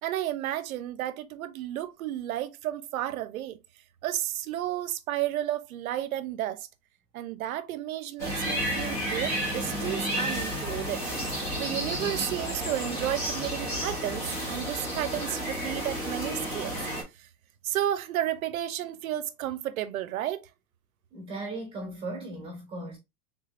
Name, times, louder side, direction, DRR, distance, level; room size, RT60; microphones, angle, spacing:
voice 1, 0.0-3.6 4.0-6.7 7.1-11.0 11.3-16.8 17.2-17.3 17.6-20.5, right 12 dB, 75° right, 0.7 m, -32 dB
sound 1, 8.2-17.0, equal, 5° left, 0.4 m, -31 dB
voice 2, 21.1-23.0, right 2 dB, 15° right, 1.2 m, -37 dB
3.6 x 3.2 x 2.5 m
supercardioid pair, 160°, 42 cm